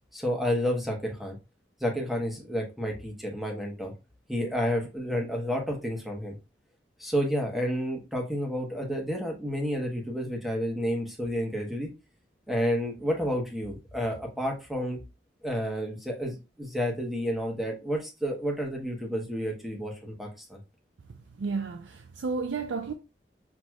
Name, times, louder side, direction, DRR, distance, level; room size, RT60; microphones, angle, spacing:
voice 1, 0.1-1.4 1.8-3.9 4.3-6.4 7.0-11.9 12.5-15.0 15.4-20.6, equal, ahead, 1.0 m, -30 dB
voice 2, 21.4-22.9, right 4 dB, 85° right, 0.4 m, -32 dB
6.1 x 2.9 x 2.3 m
head